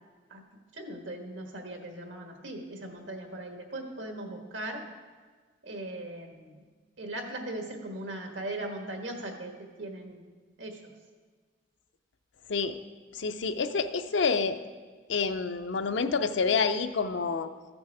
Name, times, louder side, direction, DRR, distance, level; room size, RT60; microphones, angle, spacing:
voice 1, 0.7-4.8 5.6-6.6 7.0-10.2 10.6-10.8, right 1 dB, 80° right, 3 dB, 1.5 m, -39 dB
voice 2, 13.1-14.6 15.1-17.5, left 5 dB, 70° left, 9 dB, 0.5 m, -28 dB
14.0 x 6.2 x 4.8 m, 1.5 s
head